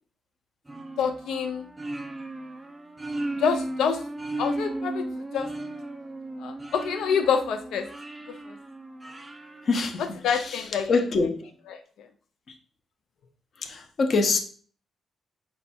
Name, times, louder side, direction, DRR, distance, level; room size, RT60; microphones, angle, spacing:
sound 1, 0.7-10.5, right 2 dB, 10° right, 0.3 m, -36 dB
voice 1, 1.0-1.7 3.4-4.0 4.4-5.1 5.3-5.5 6.4-7.9 10.2-10.9 11.7-11.8, left 6 dB, 90° left, 0.4 m, -26 dB
voice 2, 9.6-11.5 13.6-14.4, left 4 dB, 40° left, 0.6 m, -25 dB
5.2 x 2.3 x 4.1 m
cardioid pair, 165°, 0 cm